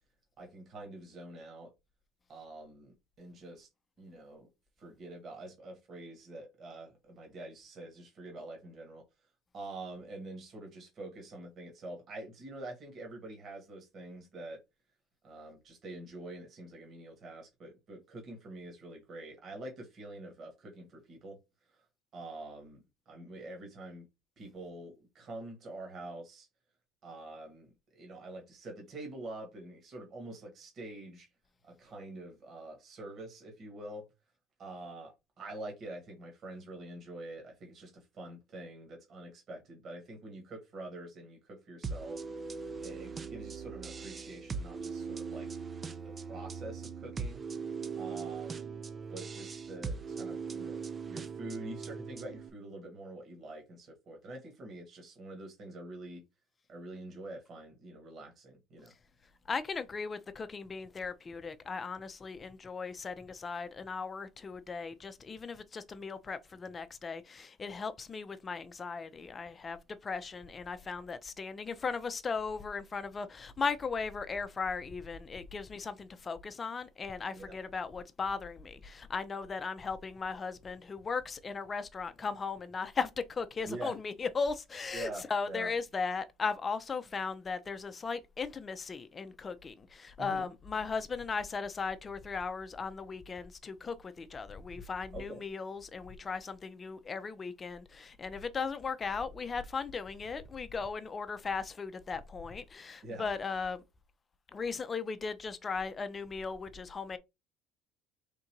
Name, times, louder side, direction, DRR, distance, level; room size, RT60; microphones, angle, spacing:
voice 1, 0.4-1.7 2.3-3.7 4.0-4.5 4.8-9.0 9.5-14.6 15.2-21.4 22.1-24.1 24.4-26.5 27.0-31.3 31.6-34.1 34.6-42.2 42.8-45.5 46.0-47.4 48.0-48.8 49.1-56.2 56.7-58.9 77.3-77.6 83.6-84.0 84.9-85.7 90.2-90.5 95.1-95.4 103.0-103.3, right 2 dB, 45° right, 1.6 m, -46 dB
sound 1, 41.8-52.5, right 5 dB, 25° right, 0.5 m, -40 dB
voice 2, 59.5-103.8 104.5-107.2, left 5 dB, 25° left, 0.6 m, -37 dB
3.7 x 2.6 x 4.5 m
supercardioid pair, 110°, 0 cm